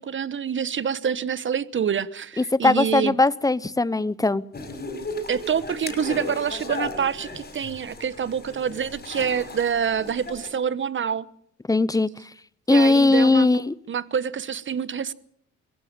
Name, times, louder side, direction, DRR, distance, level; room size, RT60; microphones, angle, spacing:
voice 1, 0.0-3.2 5.3-11.3 12.7-13.5 13.9-15.1, right 7 dB, 40° right, 1.1 m, -26 dB
voice 2, 2.4-4.4 11.7-12.1 12.7-13.7, left 2 dB, 10° left, 0.8 m, -19 dB
sound 1, 4.5-10.5, left 2 dB, 30° left, 6.1 m, -36 dB
23.0 x 14.5 x 8.9 m
cardioid pair, 90°, 30 cm